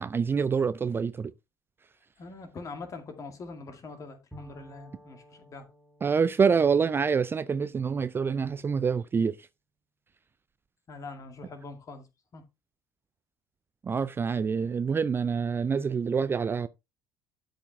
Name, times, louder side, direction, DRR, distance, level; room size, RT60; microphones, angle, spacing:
voice 1, 0.0-1.3 6.0-9.4 13.8-16.7, right 6 dB, 25° right, 0.4 m, -26 dB
voice 2, 2.2-5.7 10.9-12.1 12.3-12.4, left 3 dB, 35° left, 2.2 m, -43 dB
Bowed string instrument, 4.3-8.0, equal, 5° right, 2.9 m, -54 dB
12.0 x 5.1 x 3.4 m
figure-of-eight pair, 60°, 10 cm